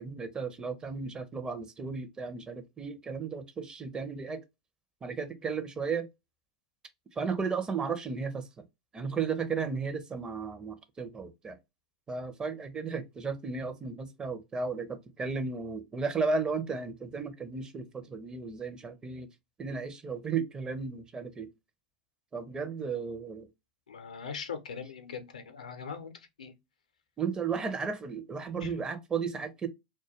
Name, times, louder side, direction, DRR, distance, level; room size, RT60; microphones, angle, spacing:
voice 1, 0.0-4.4 5.0-6.1 7.2-8.6 8.9-11.6 12.1-19.3 19.6-21.5 22.3-23.5 27.2-29.7, right 5 dB, 20° right, 0.5 m, -34 dB
voice 2, 23.9-26.5 28.6-28.7, left 6 dB, 80° left, 0.5 m, -41 dB
2.2 x 2.2 x 2.7 m
hypercardioid pair, 95°, 4 cm